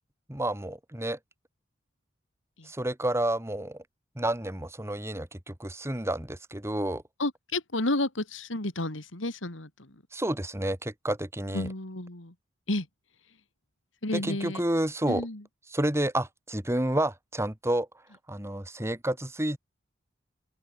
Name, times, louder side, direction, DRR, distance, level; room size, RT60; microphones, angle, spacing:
voice 1, 0.3-1.2 2.7-3.8 4.2-7.0 10.1-11.7 14.1-15.3 15.7-17.9 18.3-19.6, right 1 dB, 15° right, 2.3 m, -30 dB
voice 2, 7.2-9.7 11.5-12.3 12.7-12.8 14.0-14.6 15.1-15.4, left 2 dB, 85° left, 3.2 m, -31 dB
open air
head